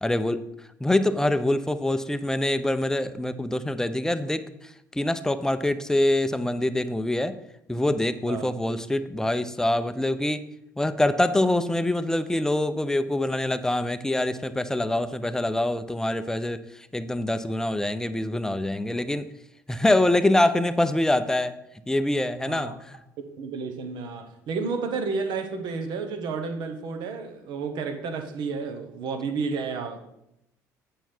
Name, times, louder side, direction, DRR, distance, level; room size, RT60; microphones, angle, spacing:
voice 1, 0.0-0.4 0.8-4.4 4.9-7.3 7.7-10.4 10.8-16.6 16.9-19.3 19.7-21.6 21.9-22.7, left 1 dB, 5° left, 11 dB, 0.6 m, -24 dB
voice 2, 8.3-8.6 22.5-22.8 23.2-30.0, right 4 dB, 55° right, 7 dB, 1.2 m, -31 dB
9.0 x 5.5 x 4.4 m, 0.81 s
figure-of-eight pair, 55°, 9 cm